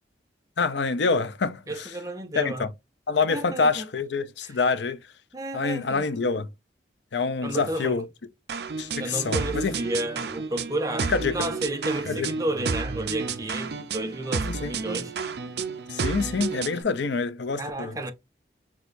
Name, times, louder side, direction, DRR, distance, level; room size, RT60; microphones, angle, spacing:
voice 1, 0.6-1.9 2.4-2.7 3.1-5.0 5.5-6.5 7.1-8.0 8.8-9.8 11.1-11.4 12.1-12.3 14.4-14.7 15.9-18.0, left 4 dB, 70° left, 0.5 m, -26 dB
voice 2, 1.7-2.7 3.3-3.9 4.4-4.5 5.3-6.1 7.4-8.0 9.0-15.1 17.6-18.1, right 1 dB, 20° right, 0.7 m, -32 dB
sound 1, 8.5-16.8, right 5 dB, 60° right, 0.5 m, -31 dB
6.0 x 2.3 x 2.5 m
head